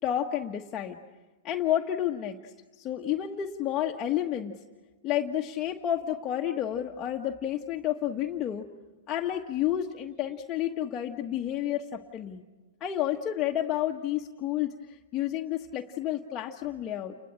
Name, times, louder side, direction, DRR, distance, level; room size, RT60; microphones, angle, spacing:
voice 1, 0.0-1.0 1.4-4.5 5.0-8.7 9.1-12.4 12.8-17.1, left 11 dB, 25° left, 1 dB, 1.3 m, -30 dB
29.5 x 22.0 x 8.8 m, 1.3 s
hypercardioid pair, 135°, 0 cm